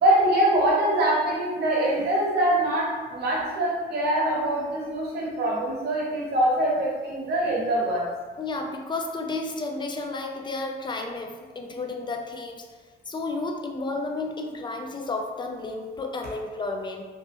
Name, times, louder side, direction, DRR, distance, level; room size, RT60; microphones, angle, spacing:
voice 1, 0.0-8.1, right 1 dB, 55° right, -5 dB, 1.0 m, -23 dB
voice 2, 8.4-12.6 13.1-17.0, left 3 dB, 25° left, 3 dB, 0.4 m, -32 dB
2.9 x 2.1 x 3.3 m, 1.4 s
cardioid pair, 90°, 20 cm